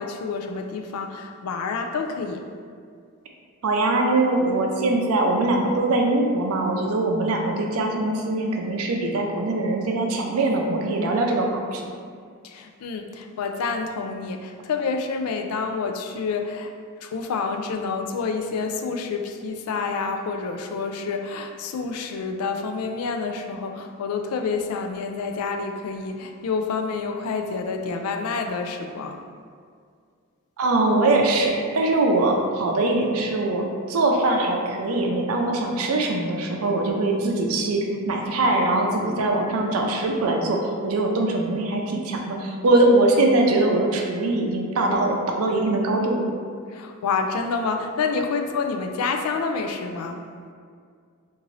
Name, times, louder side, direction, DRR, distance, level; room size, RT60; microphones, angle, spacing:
voice 1, 0.0-2.4 12.4-16.7 17.0-29.2 46.7-50.2, left 4 dB, 80° left, 5 dB, 0.4 m, -28 dB
voice 2, 3.6-11.8 30.6-46.3, right 2 dB, 70° right, 1 dB, 0.5 m, -22 dB
3.8 x 2.6 x 3.1 m, 2.1 s
head